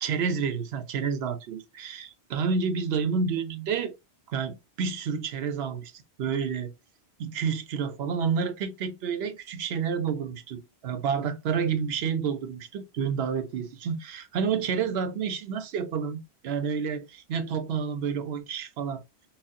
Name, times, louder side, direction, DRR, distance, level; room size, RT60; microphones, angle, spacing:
voice 1, 0.0-4.0 4.3-6.7 7.2-19.0, right 6 dB, 75° right, 0.8 m, -29 dB
5.9 x 2.0 x 2.6 m
omnidirectional pair, 1.1 m